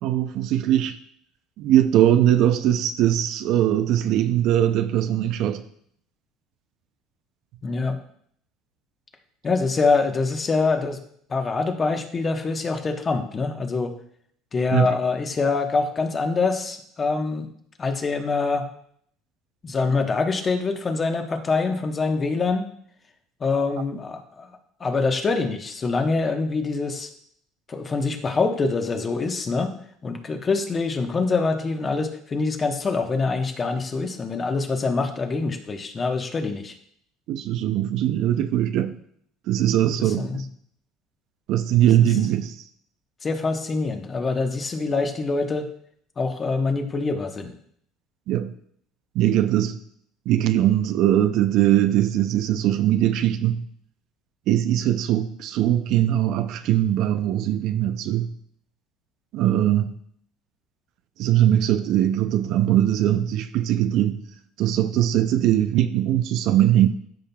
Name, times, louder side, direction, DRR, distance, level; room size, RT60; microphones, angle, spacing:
voice 1, 0.0-1.0 1.6-5.6 14.7-14.9 37.3-39.0 39.5-40.5 41.5-42.6 48.3-48.5 49.1-49.8 50.3-53.7 54.5-58.3 59.3-59.9 61.2-64.2 64.6-66.9, right 12 dB, 65° right, 0.5 m, -21 dB
voice 2, 7.6-8.0 9.4-11.0 11.3-13.9 14.5-17.5 17.8-18.7 19.6-22.7 23.4-24.5 24.8-27.1 27.7-29.7 30.0-36.7 40.0-40.5 42.0-42.1 43.2-45.7 46.2-47.5, left 4 dB, 30° left, 1.1 m, -25 dB
13.0 x 5.3 x 2.3 m
supercardioid pair, 100°, 0 cm